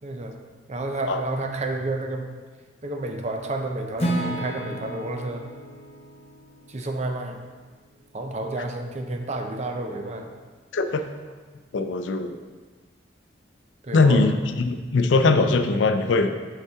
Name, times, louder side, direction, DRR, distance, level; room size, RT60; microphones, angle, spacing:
voice 1, 0.0-0.4 0.7-2.3 2.8-5.5 6.7-7.4 8.1-10.3 13.8-14.3, right 2 dB, 40° right, 4 dB, 0.6 m, -30 dB
Acoustic guitar / Strum, 4.0-8.0, right 1 dB, 35° left, 0.8 m, -33 dB
voice 2, 10.7-11.0 11.7-12.4 13.9-16.3, left 3 dB, 85° left, 8 dB, 0.5 m, -21 dB
5.8 x 5.4 x 3.5 m, 1.4 s
head